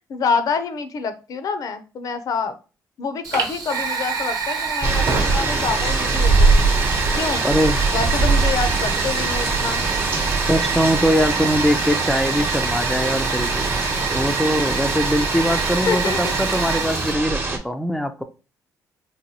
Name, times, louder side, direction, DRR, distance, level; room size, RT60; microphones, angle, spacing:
voice 1, 0.1-2.6 3.0-6.7 7.2-7.4 7.9-9.8 15.9-16.3, left 5 dB, 55° left, 9 dB, 0.5 m, -26 dB
Fire, 3.2-17.1, right 5 dB, 60° right, 0.9 m, -27 dB
sound 1, 4.8-17.6, right 3 dB, 30° right, 0.9 m, -22 dB
voice 2, 7.4-7.8 10.5-13.7 14.1-18.2, equal, ahead, 6 dB, 0.4 m, -22 dB
4.0 x 2.2 x 2.8 m, 0.32 s
cardioid pair, 100°, 7 cm